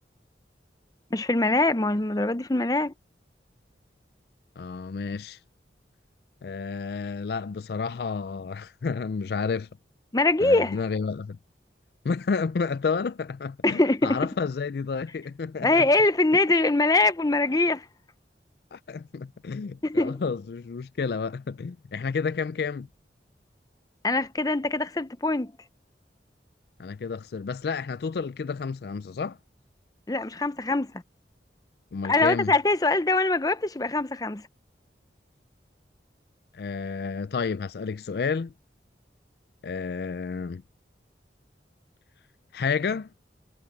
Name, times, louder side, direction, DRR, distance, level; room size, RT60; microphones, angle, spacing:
voice 1, 1.1-2.9 10.1-10.8 13.6-14.3 15.6-17.8 19.8-20.2 24.0-25.5 30.1-30.9 32.0-34.4, left 2 dB, 20° left, 0.6 m, -23 dB
voice 2, 4.6-5.4 6.4-9.7 10.4-11.4 12.0-15.9 18.7-22.9 26.8-29.4 31.9-32.5 36.5-38.5 39.6-40.6 42.5-43.1, left 5 dB, 60° left, 0.4 m, -30 dB
head